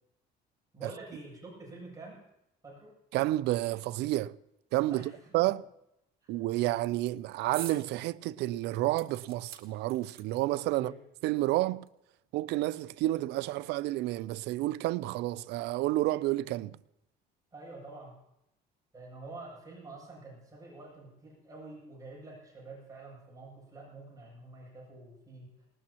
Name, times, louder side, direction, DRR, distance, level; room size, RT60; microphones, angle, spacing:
voice 1, 0.7-2.2 2.6-2.9 4.9-5.3 6.2-6.4 10.7-11.0 17.5-18.2 18.9-25.7, right 3 dB, 20° right, 7.9 m, -47 dB
voice 2, 3.1-4.4 4.7-5.0 5.3-5.7 6.3-10.9 11.2-11.9 12.3-16.8, right 17 dB, 85° right, 0.4 m, -30 dB
sound 1, 7.5-7.8 8.2-8.3 9.0-10.6 11.5-11.6 11.9-12.0, right 9 dB, 65° right, 2.0 m, -45 dB
20.0 x 19.0 x 2.9 m
cardioid pair, 110°, 17 cm